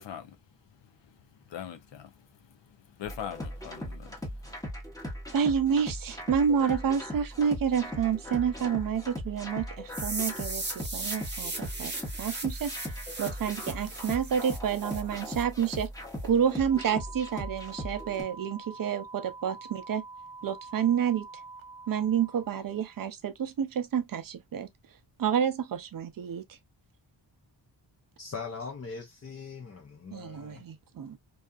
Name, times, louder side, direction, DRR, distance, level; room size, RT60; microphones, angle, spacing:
voice 1, 1.0-4.6, left 9 dB, 70° left, 0.7 m, -43 dB
sound 1, 3.0-18.2, equal, 5° left, 0.9 m, -39 dB
voice 2, 5.3-12.7 13.2-15.9 16.2-20.0 20.4-21.3 21.9-24.7 25.2-26.4 30.1-31.2, right 7 dB, 50° right, 0.5 m, -29 dB
sound 2, 9.9-15.9, right 2 dB, 25° right, 0.8 m, -38 dB
sound 3, 16.7-23.0, right 3 dB, 90° right, 0.7 m, -46 dB
voice 3, 28.2-30.6, left 5 dB, 35° left, 0.6 m, -41 dB
2.7 x 2.4 x 2.3 m
wide cardioid pair, 165°, 46 cm